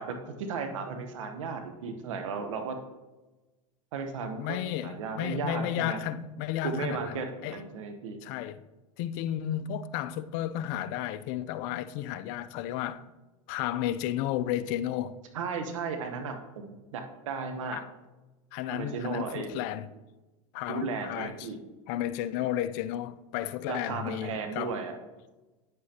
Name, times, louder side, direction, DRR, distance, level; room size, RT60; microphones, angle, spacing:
voice 1, 0.0-2.8 3.9-4.6 4.8-6.0 6.6-8.2 15.3-17.8 18.7-19.6 20.7-21.6 23.7-25.0, right 5 dB, 80° right, 1.0 m, -35 dB
voice 2, 4.4-7.6 8.2-8.6 9.0-13.1 13.5-15.2 17.7-17.9 18.5-19.9 20.5-21.5 21.9-24.8, left 11 dB, 60° left, 0.5 m, -33 dB
9.9 x 7.7 x 2.9 m
hypercardioid pair, 105°, 16 cm